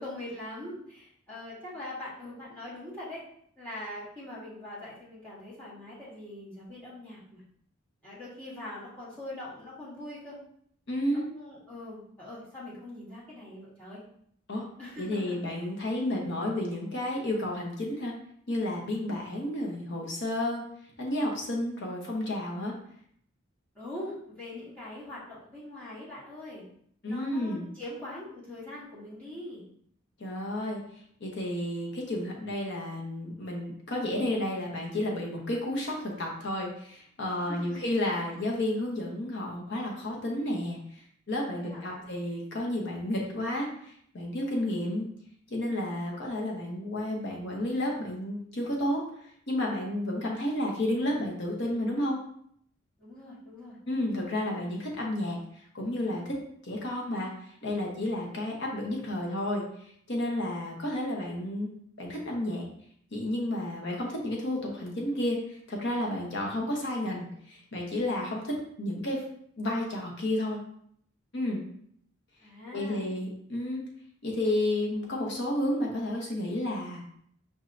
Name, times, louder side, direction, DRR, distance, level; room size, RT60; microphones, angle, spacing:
voice 1, 0.0-3.2 3.6-7.4 8.0-10.4 11.1-14.0 14.8-15.4 23.7-26.6 27.0-29.6 37.4-38.0 41.5-42.1 53.0-53.8 72.4-73.1 74.3-74.4, left 1 dB, 5° left, -10 dB, 1.5 m, -42 dB
voice 2, 10.9-11.3 14.5-14.7 15.0-18.1 18.5-20.6 21.0-22.7 27.0-27.7 30.2-30.8 31.2-41.0 41.3-45.1 45.5-52.2 53.9-56.3 56.6-61.7 62.0-62.6 63.1-69.3 69.6-70.6 71.3-71.6 72.7-73.8 74.2-77.0, left 1 dB, 60° left, -1 dB, 1.0 m, -31 dB
5.2 x 3.2 x 2.5 m, 0.66 s
head